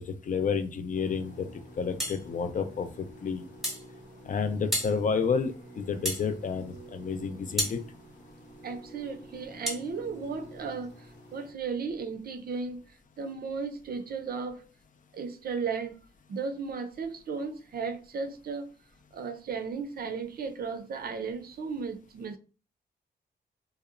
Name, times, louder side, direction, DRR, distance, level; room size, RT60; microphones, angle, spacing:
voice 1, 0.2-1.5 1.8-2.9 3.2-3.4 4.2-7.8, left 5 dB, 45° left, 0.5 m, -30 dB
sound 1, 0.9-11.5, right 1 dB, 75° left, 1.0 m, -49 dB
sound 2, 2.0-2.2 3.6-3.9 4.7-5.0 6.0-6.3 7.6-7.8 9.7-9.8, equal, ahead, 0.9 m, -30 dB
voice 2, 8.6-12.8 13.2-14.7 15.1-16.0 16.3-18.7 19.1-22.4, right 5 dB, 55° right, 0.4 m, -35 dB
2.7 x 2.0 x 2.4 m
cardioid pair, 70°, 18 cm